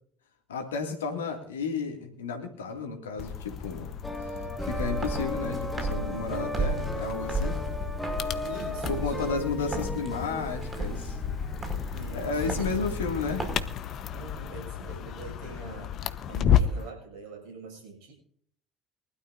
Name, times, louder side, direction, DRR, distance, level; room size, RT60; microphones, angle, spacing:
voice 1, 0.5-3.9 4.2-4.3 4.6-7.6 8.9-11.2 12.1-13.5, left 4 dB, 85° left, 4 dB, 2.3 m, -32 dB
sound 1, 3.2-16.9, left 8 dB, 55° left, 0.9 m, -33 dB
sound 2, 4.0-11.6, left 2 dB, 10° left, 1.7 m, -37 dB
Walk footsteps, 4.6-13.6, right 2 dB, 25° right, 5.3 m, -35 dB
voice 2, 8.4-9.8 11.9-12.9 14.1-16.0 16.3-18.1, right 4 dB, 70° right, 2 dB, 6.7 m, -45 dB
23.0 x 12.5 x 2.6 m, 0.62 s
hypercardioid pair, 60°, 0 cm